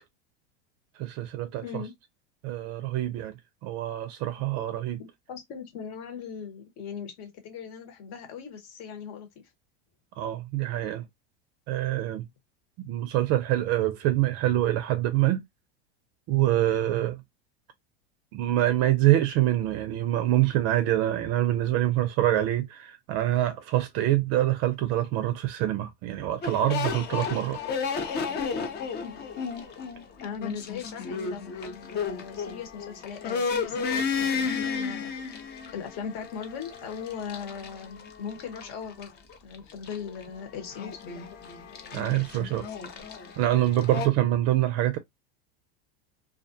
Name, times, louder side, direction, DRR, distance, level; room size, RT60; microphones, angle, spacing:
voice 1, 1.0-1.8 2.4-3.3 3.6-5.0 10.2-11.1 11.7-12.3 12.8-15.4 16.3-17.2 18.3-27.6 41.9-42.7 43.4-45.0, right 14 dB, 50° right, 0.4 m, -25 dB
voice 2, 1.6-1.9 5.0-9.3 29.0-29.3 30.2-35.1 35.7-39.1 39.4-41.2 44.3-44.4, left 7 dB, 55° left, 1.0 m, -39 dB
sound 1, 26.4-44.1, left 5 dB, 30° left, 0.5 m, -33 dB
2.4 x 2.1 x 2.6 m
supercardioid pair, 115°, 33 cm